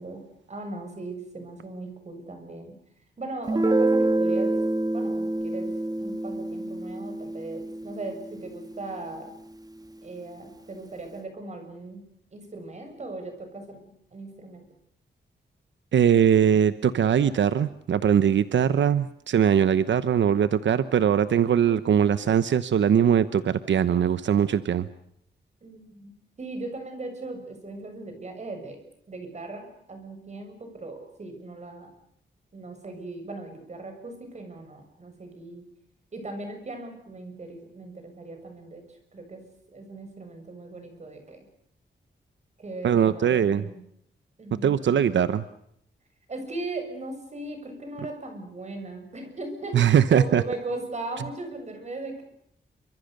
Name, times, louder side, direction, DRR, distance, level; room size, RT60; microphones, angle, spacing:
voice 1, 0.0-2.8 3.2-4.6 4.9-5.7 6.0-9.3 10.0-12.0 12.3-13.8 14.1-14.7 25.6-28.8 29.1-31.9 32.5-35.7 36.1-41.4 42.6-43.8 44.4-44.8 46.3-52.2, right 2 dB, 40° right, 5 dB, 7.2 m, -38 dB
Guitar, 3.5-9.0, right 2 dB, 20° right, 1.5 m, -27 dB
voice 2, 15.9-24.9 42.8-43.6 44.6-45.4 49.7-50.4, right 8 dB, 85° right, 13 dB, 1.0 m, -21 dB
28.5 x 25.5 x 6.7 m, 0.70 s
wide cardioid pair, 150°, 19 cm